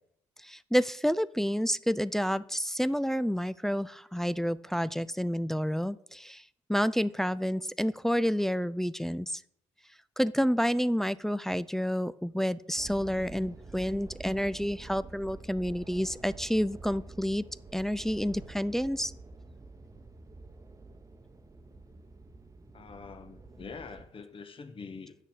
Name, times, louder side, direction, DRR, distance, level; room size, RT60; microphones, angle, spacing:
voice 1, 0.4-9.4 10.2-17.4 17.7-19.1, equal, 5° left, 16 dB, 0.3 m, -29 dB
sound 1, 12.8-24.1, right 3 dB, 25° right, 0.9 m, -48 dB
voice 2, 22.7-25.1, left 5 dB, 45° left, 9 dB, 1.2 m, -45 dB
8.6 x 6.6 x 4.8 m, 0.71 s
supercardioid pair, 65°, 13 cm